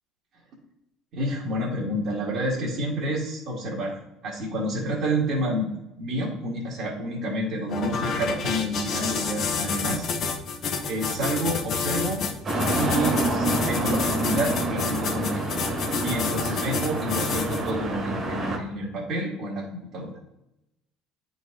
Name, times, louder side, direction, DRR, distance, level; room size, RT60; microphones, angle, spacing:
voice 1, 1.1-5.7 6.0-10.1 10.9-12.3 12.8-15.5 16.0-20.1, right 1 dB, 55° right, -5 dB, 1.7 m, -29 dB
sound 1, 7.7-17.7, left 5 dB, 45° left, 0.9 m, -29 dB
sound 2, 12.4-18.6, right 1 dB, 30° right, 1.6 m, -28 dB
9.2 x 4.1 x 3.8 m, 0.88 s
cardioid pair, 135°, 0 cm